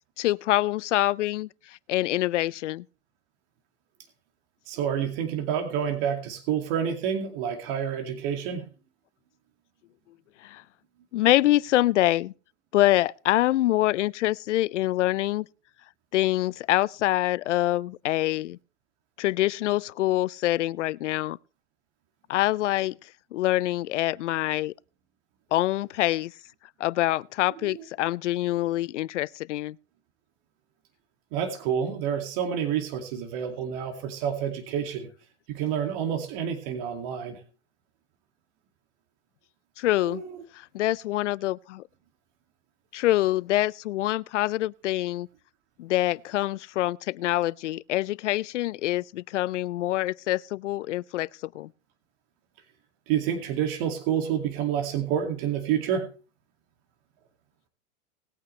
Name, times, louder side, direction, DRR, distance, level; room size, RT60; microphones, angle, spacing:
voice 1, 0.2-1.5 1.9-2.8 10.4-10.6 11.1-12.3 12.7-15.5 16.1-18.6 19.2-21.4 22.3-23.0 23.3-24.7 25.5-26.3 26.8-29.8 39.8-40.2 40.5-41.8 42.9-45.3 45.8-51.3 51.5-51.7, left 16 dB, 90° left, 0.5 m, -25 dB
voice 2, 4.7-8.7 27.6-27.8 31.3-35.1 35.5-37.4 40.0-40.4 53.1-56.1, right 8 dB, 50° right, 2.4 m, -28 dB
19.5 x 8.7 x 3.2 m
supercardioid pair, 130°, 35 cm